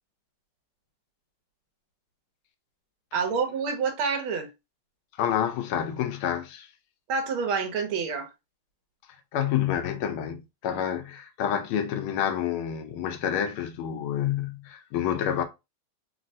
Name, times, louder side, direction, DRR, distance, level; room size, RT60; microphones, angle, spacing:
voice 1, 3.1-4.5 7.1-8.3, right 5 dB, 80° right, 1.5 m, -27 dB
voice 2, 5.2-6.7 9.3-15.4, left 9 dB, 80° left, 1.4 m, -28 dB
3.9 x 2.1 x 2.6 m
omnidirectional pair, 2.3 m